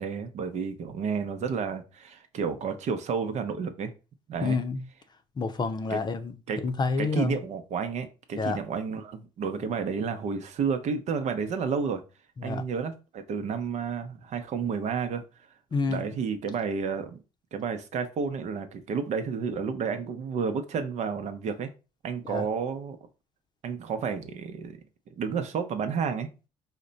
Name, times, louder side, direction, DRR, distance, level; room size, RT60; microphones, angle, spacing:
voice 1, 0.0-3.9 4.3-4.6 5.9-6.0 6.5-6.6 7.0-12.0 12.4-15.2 15.9-17.2 17.5-21.7 22.0-23.0 23.6-24.8 25.2-26.3, right 6 dB, 60° right, 0.8 m, -31 dB
voice 2, 4.4-4.8 5.4-6.3 6.6-7.3 8.4-8.6 12.4-12.6 15.7-16.0 22.3-22.4, left 4 dB, 35° left, 0.6 m, -28 dB
4.9 x 2.2 x 3.9 m
cardioid pair, 85°, 13 cm